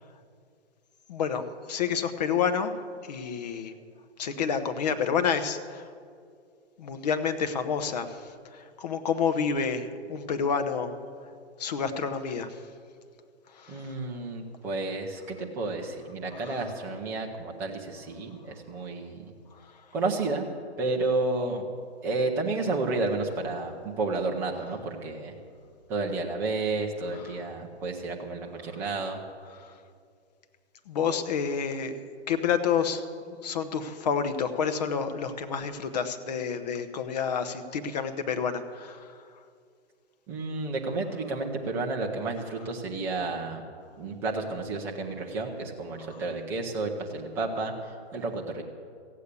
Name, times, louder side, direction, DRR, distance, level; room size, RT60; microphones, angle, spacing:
voice 1, 1.1-2.7 3.1-3.7 4.2-5.8 6.8-8.1 8.5-11.0 11.6-12.5 13.6-13.8 16.3-16.5 27.1-27.4 29.5-29.7 30.9-31.9 32.3-33.0 33.4-39.1 46.1-46.2, left 6 dB, 35° left, 8 dB, 0.9 m, -29 dB
voice 2, 13.7-19.2 19.9-20.5 20.8-21.6 22.0-25.3 25.9-29.2 40.3-43.6 44.0-47.7 48.1-48.6, right 3 dB, 5° right, 0 dB, 0.6 m, -31 dB
15.0 x 8.3 x 8.3 m, 2.2 s
hypercardioid pair, 155°, 34 cm